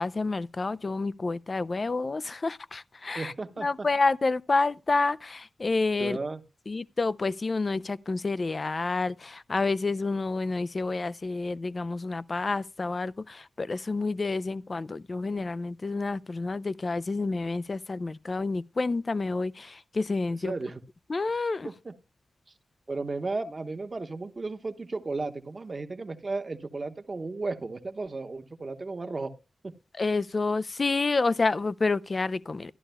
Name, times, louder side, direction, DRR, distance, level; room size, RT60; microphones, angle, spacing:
voice 1, 0.0-6.2 6.7-20.5 21.1-21.7 30.0-32.7, left 3 dB, 40° left, 0.4 m, -29 dB
voice 2, 3.1-3.9 6.0-6.4 20.4-20.8 21.8-22.0 22.9-29.3 29.6-29.7, right 3 dB, 40° right, 1.0 m, -34 dB
13.0 x 11.0 x 2.2 m
cardioid pair, 65°, 0 cm